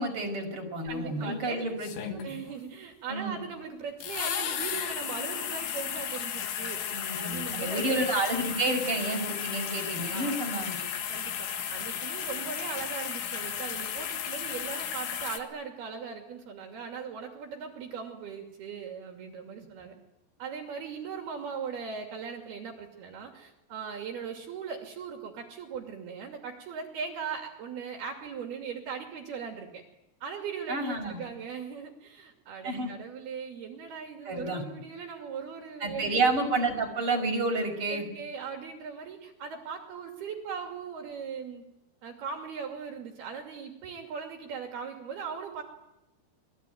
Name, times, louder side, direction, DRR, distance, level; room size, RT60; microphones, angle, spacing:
voice 1, 0.0-2.3 3.1-3.4 6.9-10.8 30.7-31.2 32.6-32.9 34.3-34.6 35.8-38.1, right 2 dB, 30° right, 3 dB, 6.2 m, -30 dB
voice 2, 0.8-1.7 2.2-7.9 10.1-10.3 11.1-20.0 20.4-29.8 30.2-36.2 37.9-41.6 42.0-45.6, right 6 dB, 65° right, 3 dB, 4.4 m, -39 dB
sound 1, 0.9-1.0 1.8-2.5 4.0-15.4, left 9 dB, 90° left, 4.4 m, -34 dB
28.5 x 21.5 x 9.4 m, 0.90 s
omnidirectional pair, 5.1 m